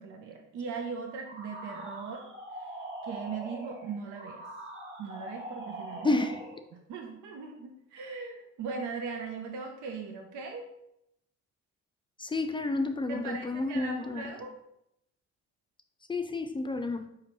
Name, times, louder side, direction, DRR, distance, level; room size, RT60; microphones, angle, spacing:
voice 1, 0.0-2.2 3.0-4.5 5.0-6.2 6.9-10.7 13.1-14.5, right 5 dB, 80° right, 2 dB, 0.6 m, -39 dB
sound 1, 1.2-6.7, right 1 dB, 40° right, 1.1 m, -42 dB
voice 2, 6.0-6.4 12.2-14.3 16.1-17.1, left 2 dB, 15° left, 7 dB, 0.3 m, -30 dB
4.4 x 3.7 x 3.0 m, 0.81 s
cardioid pair, 90°, 30 cm